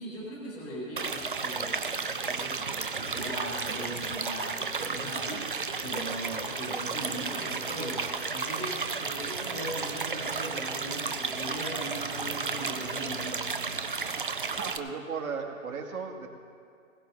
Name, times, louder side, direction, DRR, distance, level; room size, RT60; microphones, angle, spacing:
voice 1, 0.0-13.4, equal, 5° left, -12 dB, 1.0 m, -39 dB
sound 1, 1.0-14.8, right 4 dB, 40° right, 0.5 m, -33 dB
voice 2, 14.5-16.3, right 5 dB, 80° right, 2 dB, 2.2 m, -36 dB
20.5 x 18.0 x 2.6 m, 2.3 s
hypercardioid pair, 175°, 41 cm